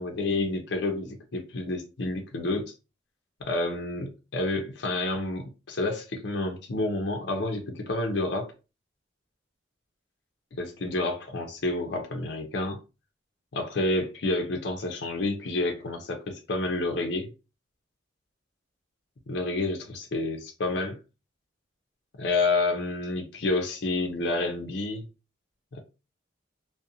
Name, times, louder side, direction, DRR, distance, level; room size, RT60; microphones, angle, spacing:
voice 1, 0.0-2.6 3.4-8.5 10.5-12.8 13.5-17.3 19.3-21.0 22.2-25.0 25.7-25.8, left 2 dB, 60° left, 0.5 m, -29 dB
2.4 x 2.0 x 2.6 m
head